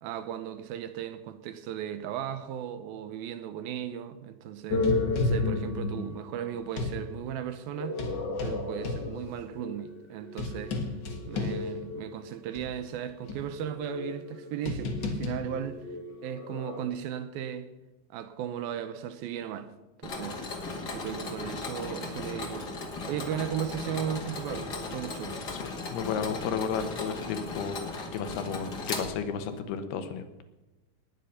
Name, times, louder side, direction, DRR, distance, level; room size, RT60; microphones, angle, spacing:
voice 1, 0.0-4.9 5.2-8.1 8.4-10.8 11.3-15.9 16.2-17.7 18.1-19.7 20.0-20.6 20.9-25.4, right 10 dB, 75° right, 2.5 m, -36 dB
sound 1, 4.7-7.0 7.8-12.1 12.5-12.6 13.3-16.8, left 3 dB, 60° left, 1.1 m, -32 dB
Mechanisms, 20.0-29.6, left 3 dB, 40° left, 1.7 m, -37 dB
voice 2, 25.9-27.8 28.1-30.4, left 7 dB, 80° left, 3.1 m, -33 dB
19.0 x 9.2 x 5.7 m
omnidirectional pair, 4.6 m